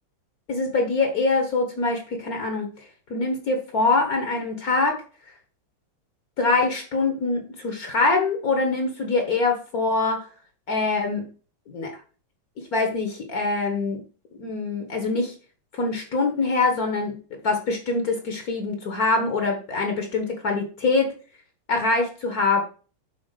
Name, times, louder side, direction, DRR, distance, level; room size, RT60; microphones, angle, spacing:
voice 1, 0.5-2.7 3.1-5.0 6.4-10.2 10.7-11.3 11.7-11.9 12.7-14.0 14.4-15.3 15.8-17.2 17.4-21.1 21.7-22.6, left 3 dB, 50° left, 3 dB, 1.5 m, -24 dB
6.5 x 4.1 x 5.6 m, 0.38 s
omnidirectional pair, 2.1 m